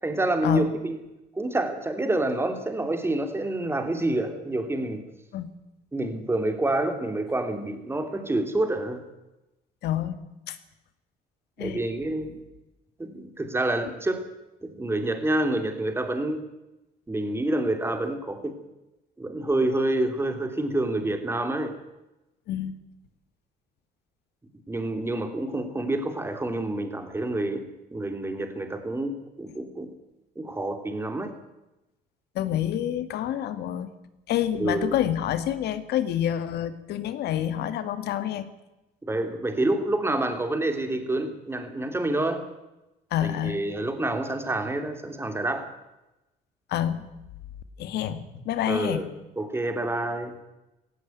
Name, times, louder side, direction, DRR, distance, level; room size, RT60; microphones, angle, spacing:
voice 1, 0.0-1.0 1.3-5.0 5.9-9.0 11.6-12.4 13.0-14.2 14.6-16.4 17.1-18.5 19.2-21.7 24.7-29.9 30.3-31.3 34.6-35.0 39.0-42.4 43.2-45.7 48.7-49.1 49.4-50.4, right 2 dB, 15° right, 6 dB, 3.2 m, -28 dB
voice 2, 9.8-10.1 10.5-10.6 11.6-11.8 22.5-22.7 32.4-33.9 34.3-38.5 43.1-43.6 46.7-47.0 47.8-49.0, left 11 dB, 75° left, 11 dB, 2.0 m, -27 dB
17.0 x 16.5 x 9.3 m, 0.97 s
cardioid pair, 110°, 17 cm